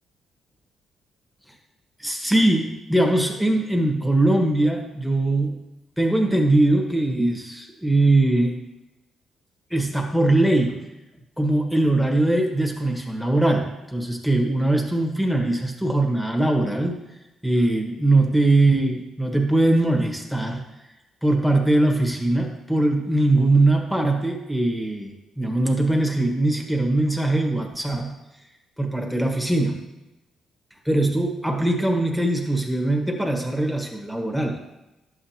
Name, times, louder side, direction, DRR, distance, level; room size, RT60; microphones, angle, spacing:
voice 1, 2.0-5.6 6.0-8.6 9.7-10.8 11.4-17.0 17.4-20.6 21.2-28.2 28.8-29.9 30.8-34.6, right 2 dB, ahead, 2 dB, 1.5 m, -21 dB
11.0 x 7.8 x 2.9 m, 0.97 s
cardioid pair, 90°, 0 cm